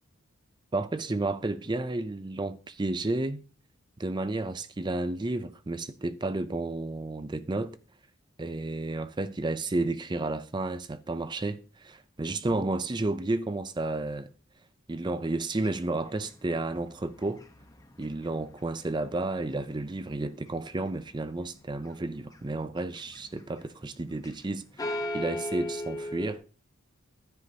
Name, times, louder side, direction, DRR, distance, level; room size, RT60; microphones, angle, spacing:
voice 1, 0.7-3.4 4.0-7.8 8.4-14.3 14.9-17.4 18.0-26.4, right 2 dB, 20° right, 0.5 m, -32 dB
sound 1, 15.6-19.7 20.0-20.9 21.4-21.9 22.2-24.5 24.8-26.3, left 1 dB, 15° left, 1.1 m, -37 dB
15.0 x 9.6 x 2.9 m
head